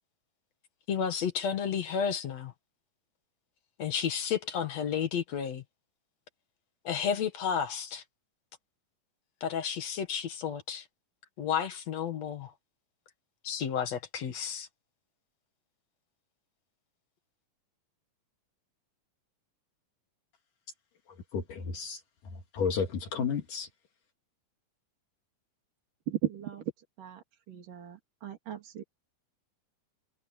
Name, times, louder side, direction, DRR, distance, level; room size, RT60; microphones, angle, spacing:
voice 1, 0.9-2.5 3.8-5.6 6.8-8.0 9.4-10.8 11.4-12.5 13.4-14.7, left 7 dB, 55° left, 2.7 m, -32 dB
voice 2, 21.3-22.0 22.3-23.7, left 6 dB, 75° left, 3.8 m, -32 dB
voice 3, 26.1-26.7 27.0-28.8, right 11 dB, 75° right, 4.5 m, -36 dB
omnidirectional pair, 3.8 m